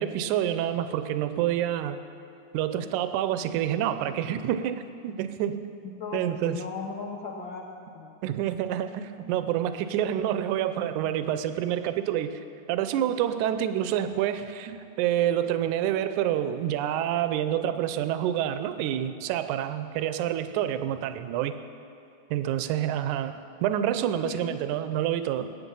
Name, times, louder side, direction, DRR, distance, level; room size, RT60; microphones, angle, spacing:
voice 1, 0.0-2.0 2.5-5.6 6.1-6.6 8.2-12.4 12.7-21.5 22.3-25.5, right 11 dB, 80° right, 10 dB, 2.1 m, -28 dB
voice 2, 5.8-7.7 7.9-8.1 24.2-24.6, left 4 dB, 90° left, 0 dB, 1.0 m, -36 dB
21.0 x 8.6 x 5.4 m, 2.5 s
omnidirectional pair, 3.5 m